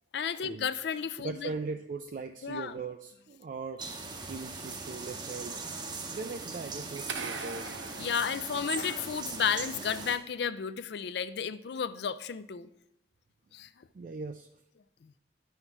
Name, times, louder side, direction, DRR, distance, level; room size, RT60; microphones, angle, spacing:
voice 1, 0.1-1.5 2.4-2.7 8.0-12.7 13.5-13.7 15.0-15.1, left 7 dB, 60° left, 13 dB, 0.4 m, -33 dB
voice 2, 1.2-4.0 4.2-5.7 6.1-7.7 13.9-14.6, right 4 dB, 45° right, 7 dB, 0.3 m, -39 dB
sound 1, 3.8-10.2, right 4 dB, 25° right, 0.7 m, -40 dB
sound 2, 7.1-9.2, right 5 dB, 80° right, 0.8 m, -41 dB
9.9 x 5.7 x 4.6 m, 0.81 s
head